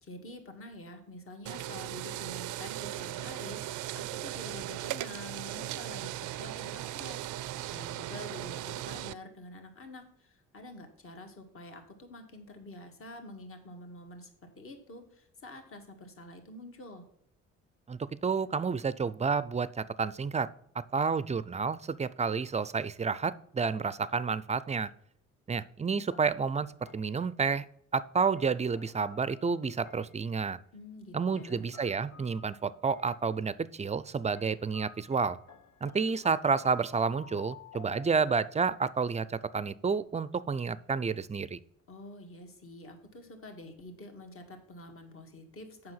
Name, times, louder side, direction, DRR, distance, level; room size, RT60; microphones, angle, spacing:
voice 1, 0.0-14.3 14.6-17.0 30.7-31.7 41.9-45.9, left 1 dB, 45° left, 4 dB, 1.9 m, -47 dB
sound 1, 1.5-9.1, right 14 dB, 80° right, 0.5 m, -38 dB
voice 2, 17.9-20.5 20.9-24.9 25.5-26.7 26.9-27.6 27.9-30.6 31.1-35.4 35.8-41.6, right 5 dB, 25° right, 17 dB, 0.4 m, -30 dB
sound 2, 26.1-27.3 28.4-30.3 31.4-33.3 34.4-38.6, left 7 dB, 65° left, 1.1 m, -54 dB
7.7 x 5.9 x 5.6 m, 0.70 s
cardioid pair, 90°, 30 cm